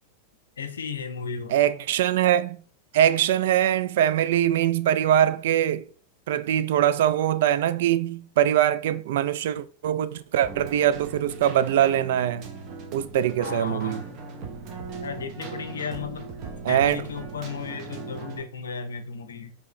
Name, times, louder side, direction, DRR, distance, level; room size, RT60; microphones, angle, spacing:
voice 1, 0.6-1.5 13.4-14.1 15.0-16.3 16.7-19.5, left 6 dB, 70° left, 0.6 m, -34 dB
voice 2, 1.5-2.6 2.9-5.9 6.3-12.5 12.9-14.0 16.6-17.0, right 11 dB, 55° right, 0.3 m, -22 dB
Keyboard (musical), 10.4-18.4, right 4 dB, 40° right, 0.8 m, -38 dB
4.7 x 2.8 x 3.0 m
figure-of-eight pair, 90°, 0 cm